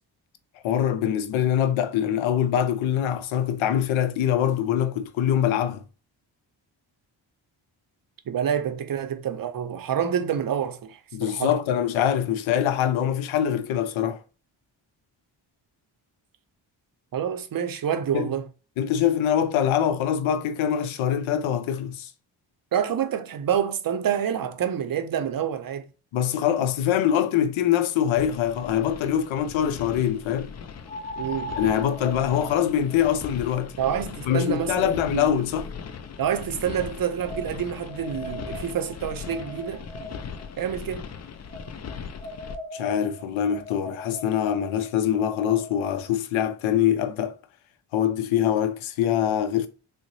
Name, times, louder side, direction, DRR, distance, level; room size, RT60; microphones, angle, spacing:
voice 1, 0.6-5.8 11.1-14.2 18.1-18.3 18.8-22.1 26.1-30.5 31.6-33.7 34.3-35.7 42.7-47.4 47.9-49.7, left 9 dB, 85° left, 0.5 m, -24 dB
voice 2, 8.3-11.5 17.1-18.5 22.7-25.9 31.2-31.6 33.8-35.3 36.2-39.8 40.6-41.1, right 8 dB, 50° right, 0.6 m, -27 dB
sound 1, 28.2-42.6, left 6 dB, 35° left, 0.4 m, -39 dB
sound 2, 30.9-36.0 36.8-40.5 41.5-46.1, equal, 15° left, 0.9 m, -40 dB
3.7 x 2.1 x 3.0 m
cardioid pair, 55°, 46 cm